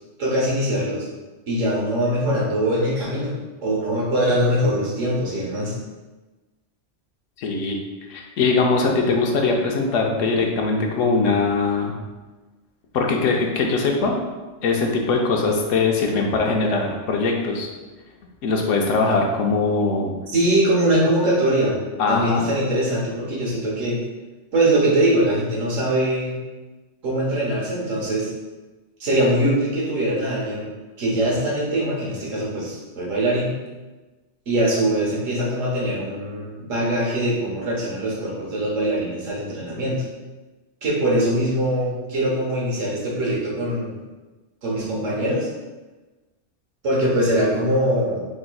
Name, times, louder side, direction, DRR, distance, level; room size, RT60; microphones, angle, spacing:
voice 1, 0.2-1.1 1.5-3.3 3.6-5.7 20.3-21.8 22.1-24.0 24.5-26.4 27.0-28.3 29.0-30.7 31.0-33.5 34.5-40.0 40.8-44.0 44.6-45.5 46.8-48.3, right 1 dB, 90° right, -5 dB, 1.5 m, -22 dB
voice 2, 7.4-7.8 8.1-11.9 12.9-14.2 14.6-17.7 18.4-20.1 22.0-22.5, left 3 dB, 80° left, 1 dB, 1.0 m, -21 dB
4.3 x 3.7 x 2.3 m, 1.2 s
omnidirectional pair, 1.3 m